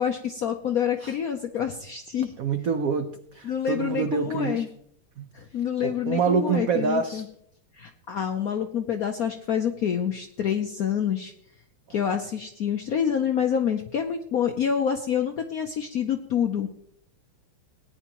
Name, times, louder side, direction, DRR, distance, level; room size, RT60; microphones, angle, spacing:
voice 1, 0.0-2.3 3.4-4.7 5.3-7.3 7.8-11.3 11.9-16.7, left 8 dB, 75° left, 5 dB, 0.8 m, -27 dB
voice 2, 2.4-4.7 5.2-5.3 5.8-7.2, right 5 dB, 85° right, 8 dB, 0.7 m, -26 dB
17.5 x 10.0 x 3.0 m, 0.69 s
omnidirectional pair, 2.4 m